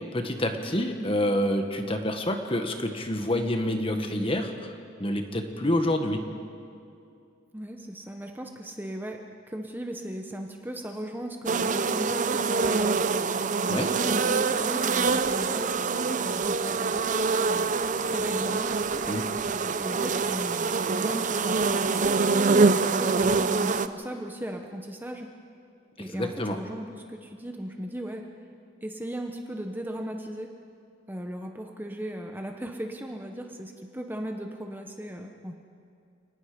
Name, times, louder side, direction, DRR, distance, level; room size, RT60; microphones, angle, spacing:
voice 1, 0.1-4.7 5.0-6.3 13.7-13.9 19.1-19.3 26.1-26.6, left 1 dB, 30° left, 5 dB, 1.6 m, -27 dB
voice 2, 7.5-9.2 9.5-13.1 13.6-19.0 19.6-25.3 26.0-28.3 28.8-30.5 31.1-35.5, right 1 dB, 10° right, 3 dB, 0.9 m, -37 dB
sound 1, 11.5-23.9, right 4 dB, 40° right, 0.6 m, -25 dB
29.5 x 19.0 x 5.1 m, 2.5 s
head